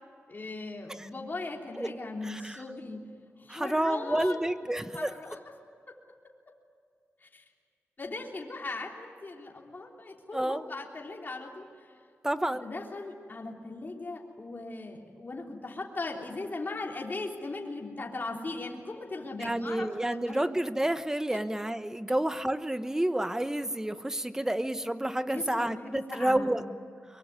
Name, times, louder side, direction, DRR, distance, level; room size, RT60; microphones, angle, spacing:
voice 1, 0.3-3.0 3.4-4.6 4.9-5.4 7.2-7.4 8.0-11.9 12.5-20.5 21.3-21.4 25.3-26.6, left 3 dB, 40° left, 0 dB, 3.5 m, -39 dB
voice 2, 2.2-2.6 3.5-5.1 10.3-10.6 12.2-12.7 19.4-26.6, right 1 dB, 10° right, 11 dB, 1.1 m, -29 dB
23.5 x 23.0 x 9.5 m, 2.2 s
wide cardioid pair, 90°, 5 cm